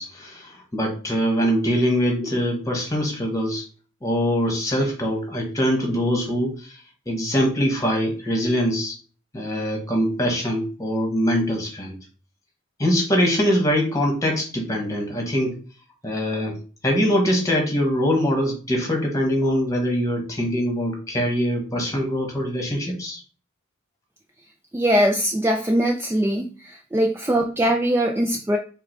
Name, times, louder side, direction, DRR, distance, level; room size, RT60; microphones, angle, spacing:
voice 1, 0.0-3.6 4.0-6.7 7.0-8.9 9.3-11.9 12.8-15.5 16.0-16.6 16.8-23.2, equal, 15° left, 1 dB, 1.3 m, -23 dB
voice 2, 24.7-28.6, equal, 10° right, 3 dB, 0.3 m, -21 dB
4.8 x 2.2 x 4.5 m, 0.38 s
head